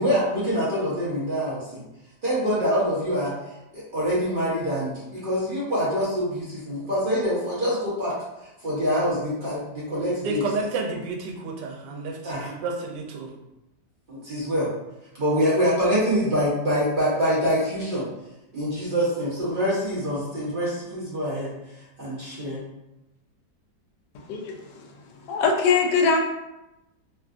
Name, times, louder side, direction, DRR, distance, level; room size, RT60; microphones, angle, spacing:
voice 1, 0.0-1.8 2.2-3.3 3.7-8.1 8.6-10.4 12.2-12.5 14.1-14.7 15.2-18.1 18.5-21.5 22.0-22.6, equal, 50° right, -8 dB, 0.6 m, -25 dB
voice 2, 10.2-13.3, right 3 dB, 90° right, 1 dB, 1.2 m, -30 dB
voice 3, 24.3-24.9 25.2-26.2, left 5 dB, 85° left, 2 dB, 1.2 m, -22 dB
3.3 x 2.3 x 2.4 m, 0.95 s
omnidirectional pair, 1.8 m